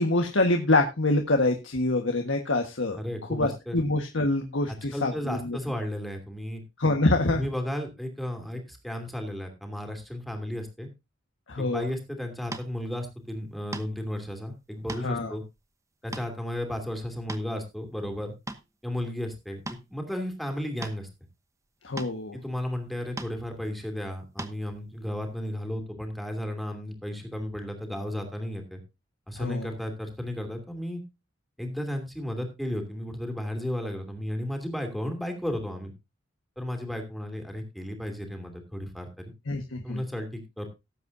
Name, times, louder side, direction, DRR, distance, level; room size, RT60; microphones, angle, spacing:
voice 1, 0.0-3.0 3.3-5.6 6.8-7.4 11.5-11.8 15.0-15.3 21.8-22.4 29.4-29.7 39.5-40.0, left 2 dB, 85° left, 3 dB, 1.4 m, -25 dB
voice 2, 2.9-3.8 4.7-6.6 7.3-10.9 11.6-15.4 16.0-18.3 18.8-19.6 19.9-21.1 22.3-28.8 29.3-31.0 31.6-35.9 36.6-39.3 39.8-40.7, left 1 dB, ahead, 4 dB, 2.7 m, -34 dB
sound 1, 12.5-12.7 13.7-14.0 14.6-15.1 15.6-15.7 16.1-16.3 17.0-17.6 18.2-18.6 19.6-19.8 20.8-21.0 22.0-22.2 23.2-23.4 24.4-24.5, right 2 dB, 15° right, 1.0 m, -37 dB
18.5 x 8.3 x 2.7 m, 0.25 s
head